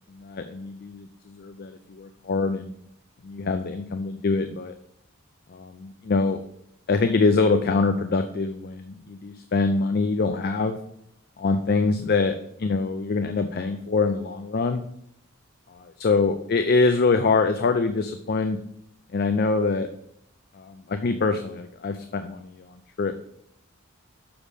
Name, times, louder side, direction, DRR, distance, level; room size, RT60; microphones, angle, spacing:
voice 1, 0.1-2.7 3.2-4.7 5.5-6.4 6.9-10.8 11.4-14.8 15.7-18.6 19.1-19.9 20.5-23.2, left 4 dB, 50° left, 8 dB, 0.4 m, -24 dB
7.1 x 5.3 x 4.9 m, 0.74 s
head